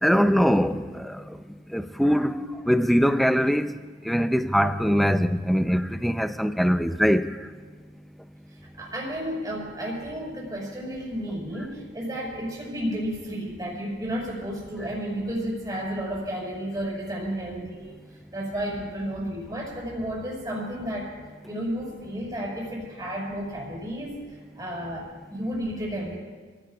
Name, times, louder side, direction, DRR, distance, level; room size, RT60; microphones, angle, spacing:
voice 1, 0.0-1.2 1.7-3.7 4.1-7.3, equal, ahead, 0.5 m, -22 dB
voice 2, 8.8-17.9 18.3-21.1 21.5-24.2 24.6-26.2, equal, 20° right, 5.4 m, -32 dB
29.0 x 16.5 x 2.4 m
head